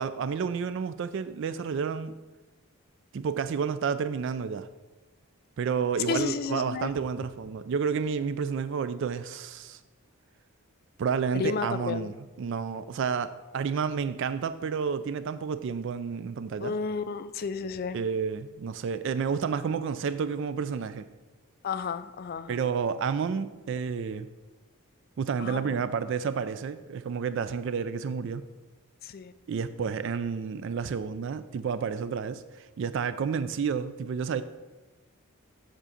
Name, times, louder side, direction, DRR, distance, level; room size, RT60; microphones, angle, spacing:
voice 1, 0.0-2.1 3.1-4.7 5.6-9.8 11.0-12.1 12.4-16.7 17.9-21.1 22.5-24.3 25.2-28.4 29.5-34.4, right 6 dB, 55° right, 13 dB, 0.3 m, -30 dB
voice 2, 6.1-6.9 11.3-12.1 16.6-18.0 21.6-22.6 25.4-25.8 29.0-29.3, left 5 dB, 40° left, 13 dB, 0.3 m, -32 dB
7.5 x 3.7 x 6.6 m, 1.2 s
head